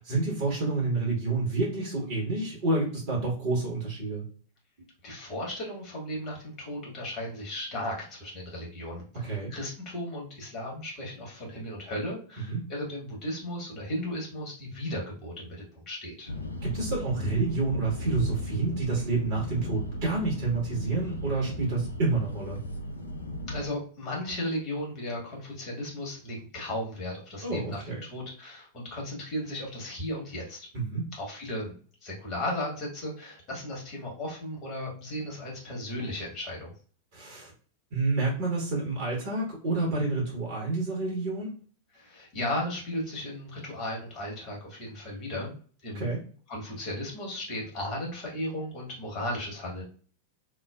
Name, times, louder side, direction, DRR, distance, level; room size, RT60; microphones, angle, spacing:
voice 1, 0.0-4.2 9.2-9.5 12.5-12.6 16.6-22.6 27.4-28.0 30.7-31.0 37.1-37.5 37.9-41.5 45.9-46.2, right 3 dB, 50° right, -4 dB, 1.1 m, -29 dB
voice 2, 5.0-16.3 23.5-30.7 31.1-31.7 32.0-36.7 41.9-45.6 45.8-46.1 46.5-49.8, left 1 dB, 35° left, -2 dB, 1.4 m, -35 dB
sound 1, 16.3-23.6, left 1 dB, 80° left, 0.6 m, -36 dB
3.1 x 2.0 x 2.4 m, 0.43 s
figure-of-eight pair, 90°, 0 cm